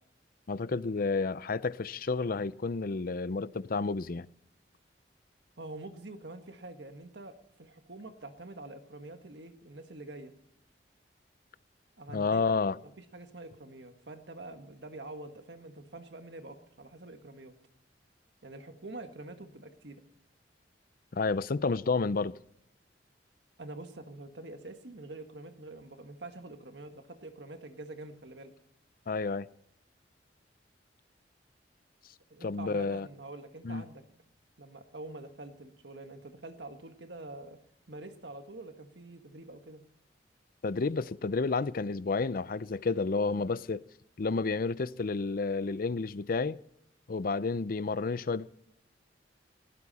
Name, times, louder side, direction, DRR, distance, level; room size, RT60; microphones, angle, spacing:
voice 1, 0.5-4.3 12.1-12.8 21.1-22.4 29.1-29.5 32.4-33.1 33.6-33.8 40.6-43.8 44.2-46.6 47.1-48.6, left 4 dB, 55° left, 0.5 m, -30 dB
voice 2, 5.6-10.3 12.0-12.5 12.8-17.5 18.4-20.0 23.6-28.5 32.3-34.0 34.6-37.6 37.9-39.8, right 2 dB, 70° right, 1.7 m, -46 dB
19.0 x 17.0 x 4.2 m
head